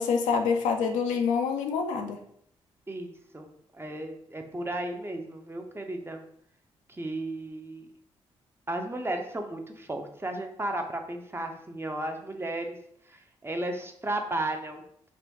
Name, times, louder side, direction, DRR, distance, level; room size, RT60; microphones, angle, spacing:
voice 1, 0.0-2.2, left 5 dB, 80° left, 4 dB, 0.4 m, -26 dB
voice 2, 2.9-3.5 3.7-6.2 6.9-7.9 8.7-12.8 13.1-14.8, right 1 dB, 20° right, 4 dB, 0.6 m, -34 dB
2.5 x 2.2 x 3.5 m, 0.69 s
hypercardioid pair, 45°, 13 cm